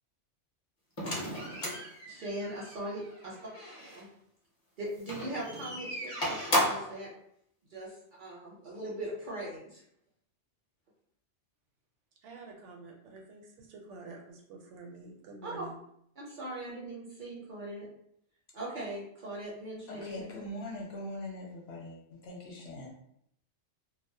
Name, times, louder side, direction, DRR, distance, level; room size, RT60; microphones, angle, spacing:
sound 1, 1.0-4.0 5.0-7.0, equal, 35° left, 0.6 m, -34 dB
voice 1, 2.1-3.3 3.9-4.1 4.8-7.1 7.7-9.8 15.4-15.6 16.2-17.9 18.5-20.4, right 1 dB, 55° right, -4 dB, 0.6 m, -40 dB
voice 2, 12.2-15.8, right 3 dB, 80° right, 0 dB, 0.9 m, -48 dB
voice 3, 19.9-22.9, left 1 dB, 65° left, -2 dB, 0.8 m, -42 dB
2.3 x 2.0 x 2.6 m, 0.71 s
omnidirectional pair, 1.2 m